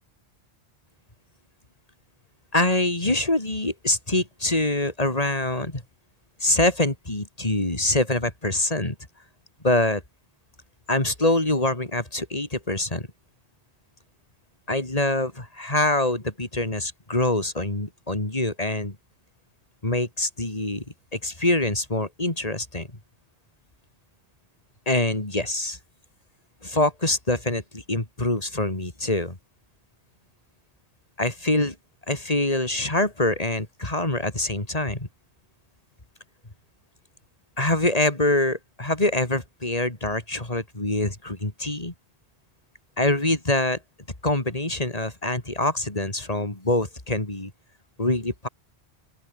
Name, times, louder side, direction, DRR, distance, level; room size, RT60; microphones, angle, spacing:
voice 1, 2.5-5.8 6.4-9.0 9.6-10.0 10.9-13.1 14.7-19.0 19.8-20.8 21.1-22.9 24.9-25.8 26.6-29.4 31.2-31.8 32.1-35.1 37.6-41.9 43.0-43.8 44.2-47.5 48.0-48.5, left 1 dB, 35° left, 3.6 m, -25 dB
open air
omnidirectional pair, 1.1 m